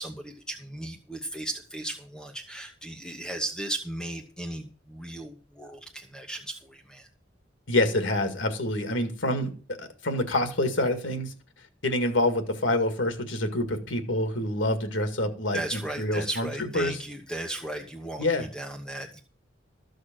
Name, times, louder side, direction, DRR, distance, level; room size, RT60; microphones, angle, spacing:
voice 1, 0.0-7.1 15.5-19.2, right 1 dB, 5° left, 2 dB, 1.1 m, -36 dB
voice 2, 7.7-9.5 9.8-11.3 11.8-16.5 16.7-17.0 18.2-18.5, left 1 dB, 85° left, 7 dB, 2.0 m, -27 dB
14.0 x 6.4 x 6.0 m, 0.40 s
head